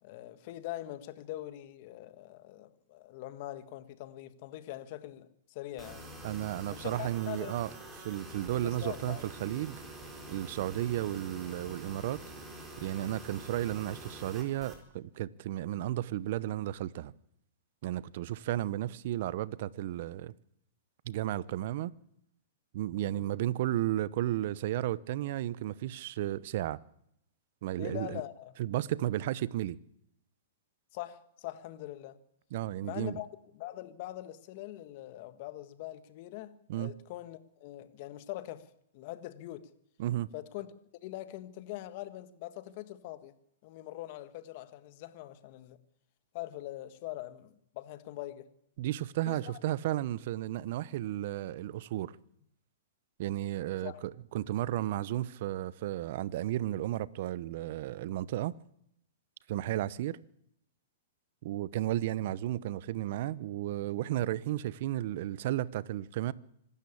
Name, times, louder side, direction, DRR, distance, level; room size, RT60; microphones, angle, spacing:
voice 1, 0.0-6.1 6.7-7.5 8.5-9.3 10.8-11.0 23.1-23.4 27.8-28.5 30.9-32.2 32.8-33.3 33.5-38.7 38.9-39.7 40.3-40.7 41.0-43.3 43.6-45.8 46.3-48.5 49.3-49.6 53.8-54.0, left 15 dB, 45° left, 1.7 m, -43 dB
sound 1, 5.8-14.8, right 2 dB, 15° right, 4.5 m, -46 dB
voice 2, 6.2-7.7 8.0-9.8 10.3-12.2 12.8-17.1 17.8-20.3 21.1-21.9 22.7-26.8 27.6-28.2 28.6-29.8 32.5-33.2 36.7-36.9 40.0-40.3 48.8-52.2 53.2-58.5 59.5-60.2 61.4-66.3, right 14 dB, 55° right, 0.8 m, -33 dB
25.5 x 12.5 x 8.6 m
hypercardioid pair, 145°, 0 cm